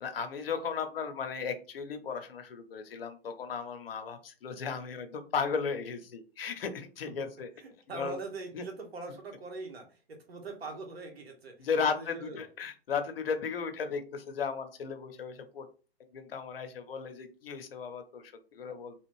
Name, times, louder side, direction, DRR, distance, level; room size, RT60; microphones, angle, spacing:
voice 1, 0.0-7.5 7.9-8.1 8.5-8.6 11.6-15.7 16.1-18.9, left 5 dB, 65° left, 8 dB, 0.7 m, -35 dB
voice 2, 7.6-12.4, right 3 dB, 75° right, 3 dB, 1.2 m, -42 dB
3.0 x 2.4 x 3.1 m, 0.36 s
hypercardioid pair, 135°, 31 cm